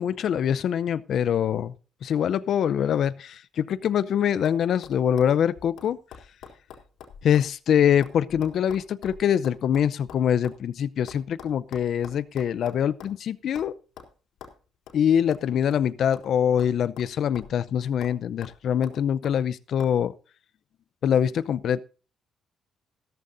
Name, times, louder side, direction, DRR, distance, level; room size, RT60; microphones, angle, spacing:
voice 1, 0.0-1.7 2.0-6.0 7.2-13.7 14.9-20.1 21.0-21.8, left 9 dB, 65° left, 0.6 m, -24 dB
sound 1, 3.7-4.1 4.4-4.6 4.8-7.5 7.8-10.6 11.1-13.2 13.6-13.7 14.0-14.1 14.4-14.6 14.9-15.0 15.3-16.3 16.6-17.6 18.0-18.2 18.4-19.4 19.8-19.9, left 7 dB, 85° left, 3.7 m, -46 dB
15.0 x 14.0 x 2.7 m
cardioid pair, 90°, 0 cm